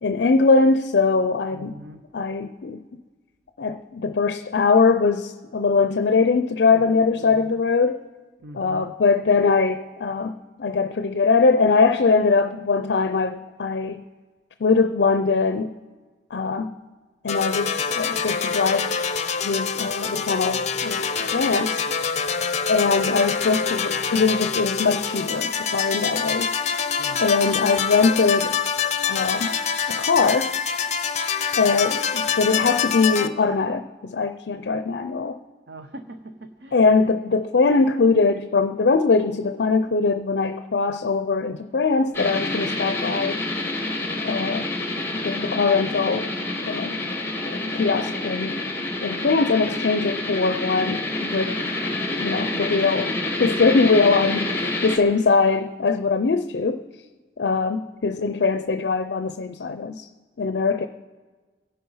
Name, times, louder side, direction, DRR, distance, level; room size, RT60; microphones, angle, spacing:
voice 1, 0.0-1.8 2.1-2.8 3.6-8.0 8.5-10.3 10.6-14.0 14.6-15.7 16.3-16.7 17.2-19.0 19.4-21.8 22.7-26.5 27.2-28.6 29.1-29.5 29.9-30.6 31.6-35.4 36.7-43.5 44.2-44.7 45.1-46.3 46.7-47.0 47.4-48.6 49.0-51.6 51.9-53.1 53.4-56.8 57.4-60.1 60.4-60.9, left 4 dB, 70° left, 10 dB, 0.5 m, -21 dB
voice 2, 1.5-2.0 6.7-7.6 8.4-8.9 27.0-27.2 35.7-36.8, right 1 dB, 75° right, 8 dB, 0.8 m, -41 dB
sound 1, 17.3-33.3, left 6 dB, 40° left, 0.8 m, -25 dB
sound 2, 42.1-55.0, left 2 dB, 15° left, 2.0 m, -28 dB
25.5 x 8.6 x 5.6 m, 1.4 s
head